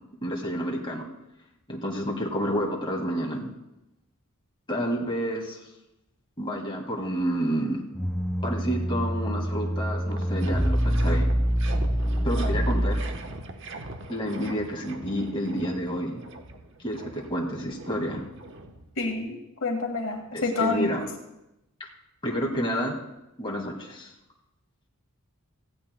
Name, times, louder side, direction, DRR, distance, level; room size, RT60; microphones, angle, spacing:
voice 1, 0.2-1.1 1.7-3.5 4.7-5.6 6.4-7.8 8.4-11.3 12.2-13.0 14.1-16.2 16.8-18.3 20.3-21.1 21.8-21.9 22.2-23.0 23.4-24.1, equal, 25° left, 0 dB, 2.0 m, -29 dB
sound 1, 7.9-13.4, equal, ahead, 0.4 m, -26 dB
sound 2, 9.8-19.2, right 2 dB, 55° right, 1.1 m, -41 dB
voice 2, 19.0-20.9, left 3 dB, 60° left, 2 dB, 1.8 m, -28 dB
17.5 x 15.5 x 2.2 m, 0.91 s
head